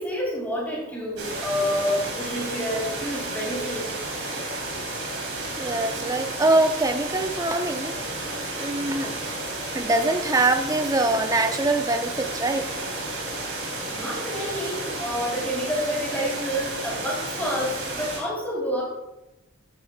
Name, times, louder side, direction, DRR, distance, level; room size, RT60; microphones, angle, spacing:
voice 1, 0.0-3.9 13.9-18.8, equal, 10° left, -4 dB, 3.7 m, -28 dB
sound 1, 1.2-18.2, right 2 dB, 65° right, 3.5 m, -32 dB
voice 2, 5.6-8.0 8.6-9.2 9.7-12.8, right 2 dB, 15° right, 7 dB, 0.6 m, -23 dB
13.0 x 10.5 x 2.4 m, 0.95 s
head